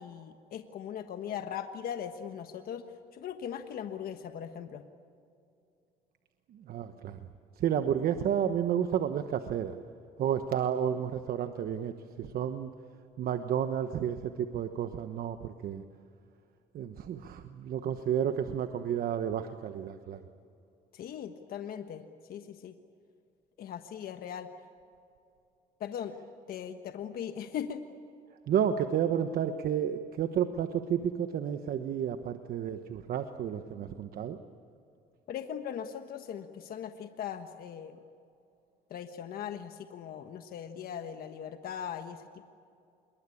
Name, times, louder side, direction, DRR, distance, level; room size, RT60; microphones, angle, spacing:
voice 1, 0.0-2.9 3.1-4.8 20.9-22.0 22.3-22.7 23.6-24.5 25.8-26.1 26.5-27.8 35.3-38.0 38.9-42.4, left 8 dB, 60° left, 7 dB, 1.3 m, -39 dB
voice 2, 6.5-7.2 7.6-9.7 10.2-12.7 13.2-15.8 16.7-20.2 28.5-34.4, right 9 dB, 60° right, 8 dB, 1.2 m, -31 dB
26.5 x 22.5 x 8.6 m, 2.5 s
cardioid pair, 110°, 17 cm